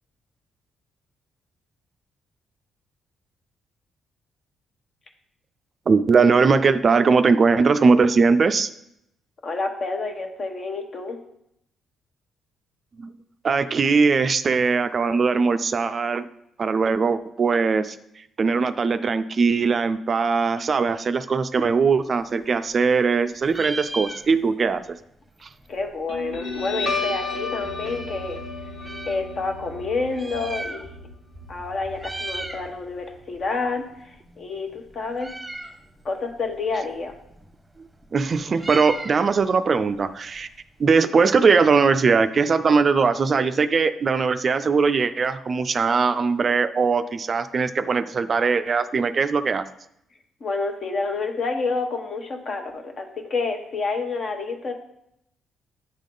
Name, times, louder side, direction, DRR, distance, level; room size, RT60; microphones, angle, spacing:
voice 1, 5.9-8.7 13.0-13.1 13.4-16.2 16.6-18.0 18.4-25.0 25.4-25.5 38.1-40.5 40.8-49.7, right 5 dB, 40° right, 11 dB, 0.3 m, -20 dB
voice 2, 9.4-11.2 25.7-28.4 29.1-30.9 31.5-35.3 36.0-37.1 50.4-54.7, left 3 dB, 50° left, 4 dB, 1.1 m, -28 dB
Meow, 22.2-23.2 23.4-24.7 25.0-25.1 25.3-27.4 28.0-29.2 30.0-31.2 31.4-31.7 31.9-32.7 33.1-40.9, right 2 dB, 10° right, 0.9 m, -38 dB
Guitar, 26.1-33.1, left 3 dB, 80° left, 2.1 m, -33 dB
9.7 x 3.6 x 3.8 m, 0.76 s
cardioid pair, 90°, 0 cm